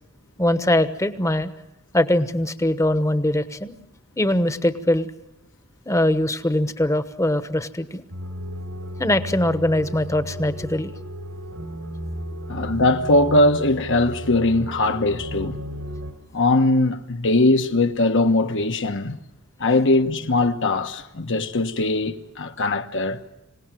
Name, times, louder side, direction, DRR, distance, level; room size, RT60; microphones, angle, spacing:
voice 1, 0.4-1.5 1.9-3.7 4.2-5.1 5.9-8.0 9.0-10.9, left 1 dB, 15° left, 1.1 m, -22 dB
sound 1, 8.1-16.1, equal, 90° right, 4.5 m, -34 dB
voice 2, 12.5-15.6 16.3-19.2 19.6-23.2, left 2 dB, 60° left, 1.3 m, -20 dB
26.5 x 18.0 x 9.1 m
head